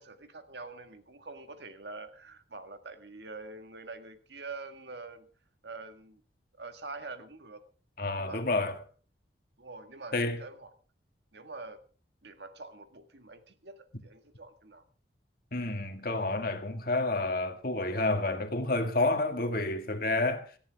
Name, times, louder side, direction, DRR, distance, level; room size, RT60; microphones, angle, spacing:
voice 1, 0.0-5.3 5.6-6.2 6.6-7.6 8.2-8.4 9.6-10.7 11.3-11.8 12.2-14.8, right 3 dB, 70° right, 1.8 m, -45 dB
voice 2, 8.0-8.8 10.1-10.4 15.5-20.5, left 2 dB, 55° left, 2.0 m, -29 dB
18.5 x 14.5 x 3.6 m
head